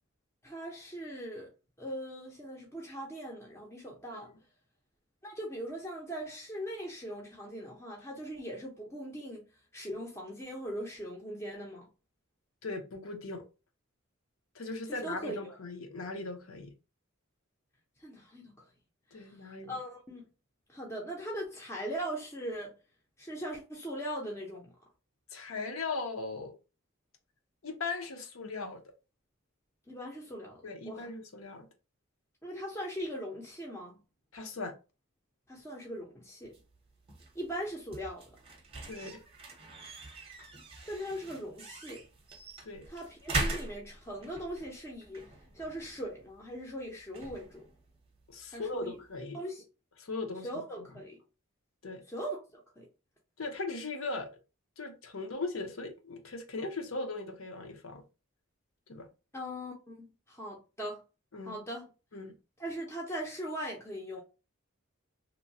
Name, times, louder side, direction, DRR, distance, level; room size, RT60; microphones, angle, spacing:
voice 1, 0.4-1.5 1.8-4.3 5.2-9.4 9.7-11.9 14.9-15.6 18.0-18.5 19.1-19.4 19.7-20.3 20.7-22.7 23.2-24.7 29.9-31.1 32.4-34.0 35.5-36.6 37.3-38.4 40.9-42.0 42.9-45.2 45.5-47.6 48.5-49.0 49.3-49.6 50.4-51.2 52.1-52.4 52.8-52.9 59.3-61.0 61.5-61.9 62.6-64.2, equal, 10° left, 0.5 m, -40 dB
voice 2, 12.6-13.4 14.5-16.7 19.1-19.8 25.3-26.5 27.6-28.8 30.6-31.7 34.3-34.8 38.9-39.2 42.6-42.9 48.3-49.4 50.0-50.5 51.8-52.0 53.4-54.3 54.8-58.0 58.9-59.1 61.3-61.6 62.1-62.3, left 3 dB, 75° left, 0.7 m, -38 dB
sound 1, 36.4-49.2, right 2 dB, 25° right, 0.7 m, -42 dB
2.9 x 2.1 x 2.6 m
head